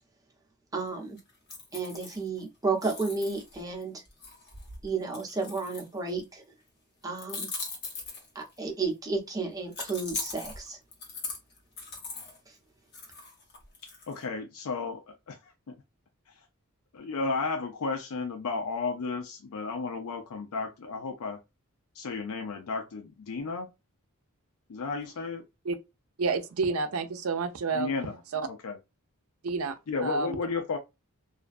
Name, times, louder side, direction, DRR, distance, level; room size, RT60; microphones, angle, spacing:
voice 1, 0.7-1.2 1.7-3.9 4.8-6.4 7.0-7.5 8.3-10.8, right 3 dB, 15° right, 0.7 m, -32 dB
sound 1, 1.2-2.4 2.8-6.2 7.2-8.6 9.7-12.4 12.9-14.2, left 3 dB, 50° left, 1.1 m, -40 dB
voice 2, 14.1-15.4 16.9-21.4 22.0-23.7 24.7-25.4 27.7-28.2 28.5-28.8 29.9-30.8, left 4 dB, 80° left, 0.4 m, -33 dB
voice 3, 26.2-27.9 28.3-28.5 29.4-30.4, right 4 dB, 70° right, 0.5 m, -29 dB
2.4 x 2.2 x 2.3 m
head